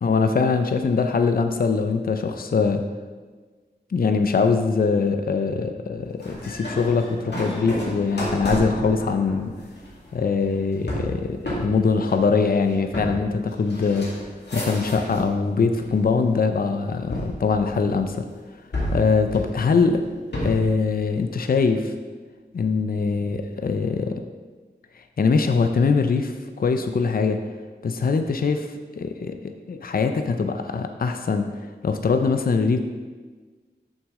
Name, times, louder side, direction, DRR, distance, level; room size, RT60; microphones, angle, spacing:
voice 1, 0.0-2.8 3.9-9.5 10.1-14.1 14.5-18.3 18.9-20.0 20.4-21.9 22.5-24.1 25.2-27.4 27.8-28.7 29.0-29.3 29.7-31.5 31.8-32.8, left 4 dB, 55° left, 7 dB, 0.5 m, -22 dB
sound 1, 6.2-15.4 15.7-16.4 17.1-18.2 18.7-20.8, equal, 75° left, 2.0 m, -31 dB
6.4 x 6.2 x 3.7 m, 1.4 s
wide cardioid pair, 55°, 18 cm